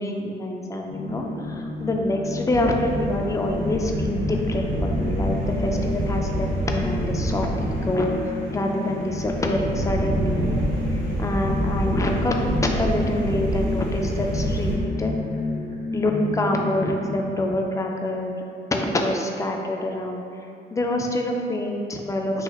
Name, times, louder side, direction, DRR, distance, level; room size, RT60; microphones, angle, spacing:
voice 1, 0.0-10.6 10.9-12.4 12.6-15.1 15.9-18.3 18.7-20.2 20.7-22.4, left 1 dB, 15° left, 2 dB, 0.3 m, -26 dB
sound 1, 0.9-17.2, left 3 dB, 90° left, 1.1 m, -31 dB
sound 2, 2.5-14.8, right 1 dB, 80° right, 0.8 m, -27 dB
4.0 x 2.8 x 2.3 m, 2.5 s
cardioid pair, 90°, 20 cm